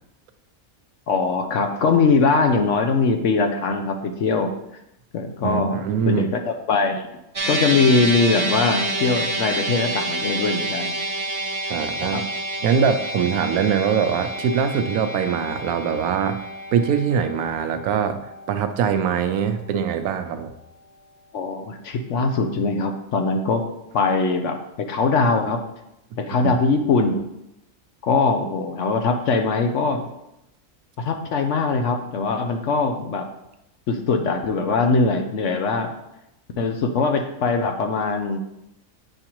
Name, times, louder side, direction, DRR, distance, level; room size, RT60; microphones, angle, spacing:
voice 1, 1.1-4.5 5.1-5.8 6.1-7.1 7.5-11.0 12.1-12.2 21.3-23.6 23.9-25.6 26.2-27.2 28.0-30.1 31.0-33.3 33.9-35.9 36.6-38.4, left 4 dB, 65° left, 5 dB, 0.9 m, -21 dB
voice 2, 5.4-6.3 11.7-12.2 12.6-16.4 16.7-18.2 18.5-20.5 26.4-26.5, right 7 dB, 85° right, 8 dB, 1.1 m, -22 dB
sound 1, 7.3-19.8, right 2 dB, 40° right, 0.4 m, -29 dB
7.8 x 4.8 x 3.0 m, 0.85 s
omnidirectional pair, 1.5 m